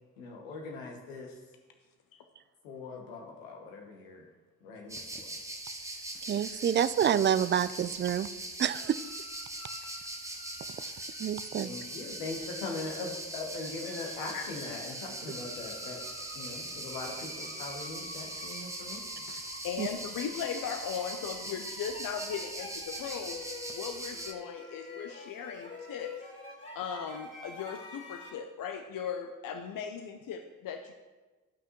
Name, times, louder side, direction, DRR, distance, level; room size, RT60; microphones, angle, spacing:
voice 1, 0.2-1.4 2.6-4.3 4.6-5.4 11.6-16.0 16.3-19.1, left 3 dB, 85° left, 1 dB, 1.2 m, -41 dB
sound 1, 4.9-24.3, right 1 dB, 10° right, 0.9 m, -41 dB
voice 2, 6.2-8.3 8.6-9.0 10.8-10.9 11.2-11.7 19.8-19.9, right 9 dB, 30° right, 16 dB, 0.4 m, -28 dB
sound 2, 8.7-28.3, left 2 dB, 30° left, 2.3 m, -49 dB
voice 3, 19.3-23.4 23.7-26.1 26.7-30.9, left 7 dB, 55° left, 6 dB, 0.7 m, -38 dB
12.0 x 5.6 x 3.1 m, 1.3 s
hypercardioid pair, 40°, 39 cm